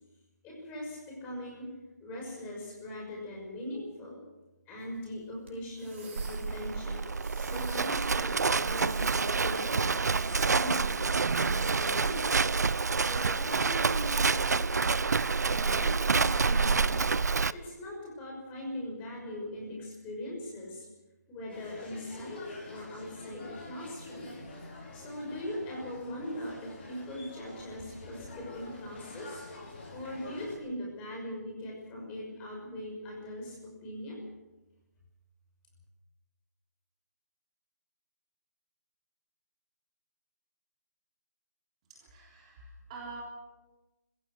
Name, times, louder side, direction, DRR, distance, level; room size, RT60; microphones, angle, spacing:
voice 1, 0.4-1.7 2.0-4.2 4.7-7.0 7.5-10.9 11.3-12.3 12.9-15.1 15.4-17.0 17.5-20.9 21.3-22.4 22.7-24.3 24.9-29.4 29.9-34.2, left 1 dB, 15° left, -2 dB, 5.9 m, -40 dB
sound 1, 4.8-12.3, right 3 dB, 45° right, 6.2 m, -50 dB
Livestock farm animals working animals, 6.2-17.5, right 4 dB, 75° right, 0.7 m, -28 dB
sound 2, 21.5-30.6, left 2 dB, 35° left, 7.3 m, -47 dB
voice 2, 41.9-43.2, right 4 dB, 25° right, -2 dB, 3.5 m, -46 dB
25.0 x 16.0 x 6.5 m, 1.1 s
figure-of-eight pair, 165°, 9 cm